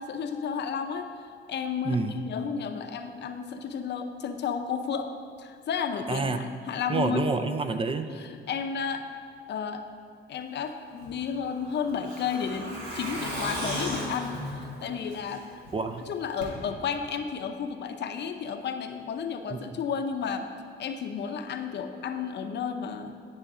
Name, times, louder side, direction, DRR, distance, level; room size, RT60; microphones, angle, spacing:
voice 1, 0.0-5.1 5.4-7.3 8.1-9.1 9.5-9.8 10.3-15.4 16.1-20.5 20.8-23.2, left 6 dB, 60° left, 6 dB, 0.6 m, -32 dB
voice 2, 1.9-2.2 6.1-6.4 6.9-8.1 15.7-16.0 19.5-19.6, right 4 dB, 25° right, 8 dB, 0.4 m, -28 dB
Truck, 11.0-15.7 16.0-16.1 16.4-16.5, equal, 85° right, 1.8 m, -36 dB
sound 1, 11.9-17.2, right 2 dB, 60° right, 2.2 m, -55 dB
9.8 x 5.7 x 3.7 m, 2.2 s
cardioid pair, 90°, 20 cm